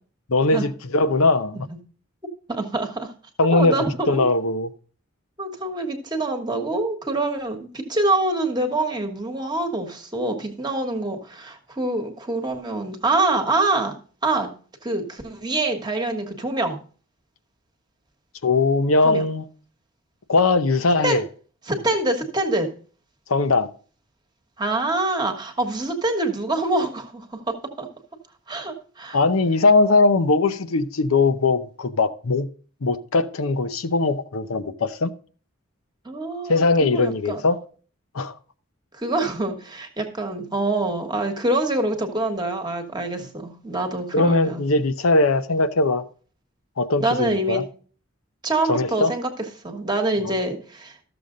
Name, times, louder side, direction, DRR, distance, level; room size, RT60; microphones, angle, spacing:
voice 1, 0.3-1.7 3.4-3.8 4.1-4.7 18.4-19.4 20.3-21.2 23.3-23.7 29.1-32.5 32.8-35.1 36.5-37.6 38.1-38.3 44.1-46.0 46.8-47.6 48.7-49.1 50.2-50.3, left 3 dB, 80° left, 0.7 m, -20 dB
voice 2, 2.5-3.1 3.5-4.2 5.4-13.9 14.2-14.5 14.8-16.8 19.0-19.3 21.0-21.2 21.7-22.7 24.6-27.9 28.5-29.2 36.0-37.4 38.9-44.6 47.0-47.6 48.4-51.0, right 2 dB, 20° right, 1.3 m, -25 dB
13.0 x 6.9 x 3.8 m
head